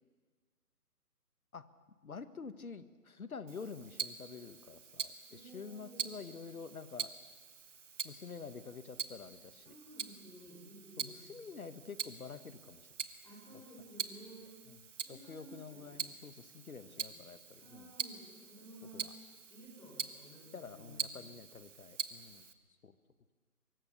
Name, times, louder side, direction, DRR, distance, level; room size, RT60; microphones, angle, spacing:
voice 1, 2.0-7.1 8.0-9.7 11.0-12.9 14.7-14.8 15.1-17.9 18.9-19.1 20.5-22.5 22.8-22.9, left 5 dB, 65° left, 12 dB, 1.7 m, -48 dB
Tick-tock, 3.5-22.5, right 6 dB, 50° right, 1.4 m, -45 dB
voice 2, 5.3-6.2 9.7-11.4 13.2-14.6 15.0-16.0 16.9-17.2 17.6-19.2 19.5-21.3, equal, 5° left, -1 dB, 3.9 m, -54 dB
24.0 x 23.0 x 6.9 m, 1.4 s
figure-of-eight pair, 145°, 46 cm